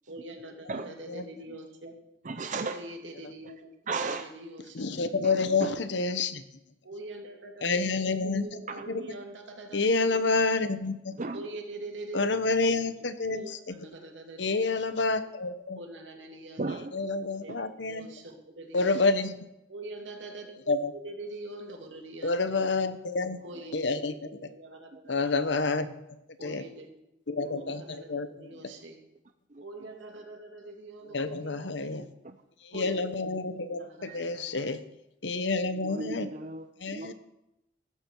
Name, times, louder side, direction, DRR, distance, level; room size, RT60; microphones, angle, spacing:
voice 1, 0.1-1.9 2.7-3.7 4.1-5.1 6.0-6.1 6.8-7.8 8.2-10.3 11.3-12.3 13.3-14.6 15.8-16.6 17.4-19.1 19.7-20.6 20.9-22.6 23.4-25.5 26.4-26.9 27.5-29.0 29.6-32.0 32.7-34.6, right 2 dB, 80° right, 3 dB, 2.6 m, -44 dB
voice 2, 2.2-2.8 3.9-4.3 5.2-5.8 8.7-9.1 11.2-11.5 16.6-17.6 27.4-28.0 29.5-29.9 32.2-32.4 34.0-34.3 35.7-37.1, right 3 dB, 40° right, 8 dB, 0.6 m, -36 dB
voice 3, 4.7-6.4 7.6-8.5 8.9-9.0 9.7-11.1 12.1-13.7 14.4-15.8 16.9-18.1 18.7-19.4 20.7-20.9 22.2-23.4 23.7-24.1 25.1-25.9 26.4-26.6 27.3-28.3 31.1-32.0 32.6-34.8 35.2-36.3 36.8-37.1, left 3 dB, 70° left, 11 dB, 1.1 m, -28 dB
15.0 x 14.0 x 4.7 m, 0.88 s
head